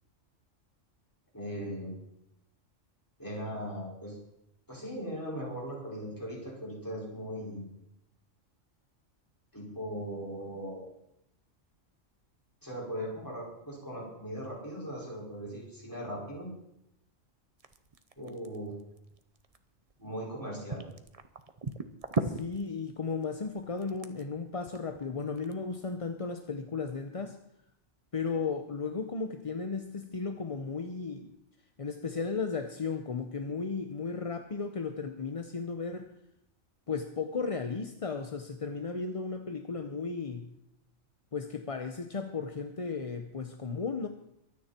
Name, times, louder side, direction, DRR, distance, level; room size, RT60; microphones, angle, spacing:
voice 1, 1.3-1.9 3.2-4.2 4.7-7.7 9.5-10.8 12.6-16.5 18.2-18.7 20.0-20.8, equal, 15° left, -4 dB, 5.4 m, -39 dB
sound 1, 17.6-20.3 20.7-25.5, right 3 dB, 30° right, 0.8 m, -37 dB
voice 2, 22.2-27.4 28.1-31.3 31.8-36.1 36.9-40.5 41.3-44.1, left 4 dB, 35° left, 7 dB, 0.7 m, -35 dB
23.0 x 9.5 x 4.4 m, 0.79 s
omnidirectional pair, 1.4 m